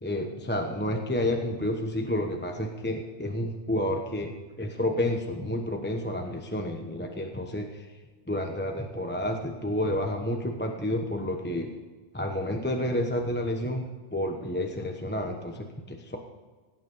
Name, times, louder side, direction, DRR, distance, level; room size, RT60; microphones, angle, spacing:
voice 1, 0.0-7.9 8.3-11.7 12.1-13.8 14.1-16.2, left 1 dB, 10° left, 3 dB, 1.1 m, -30 dB
17.5 x 9.7 x 5.5 m, 1.4 s
omnidirectional pair, 1.1 m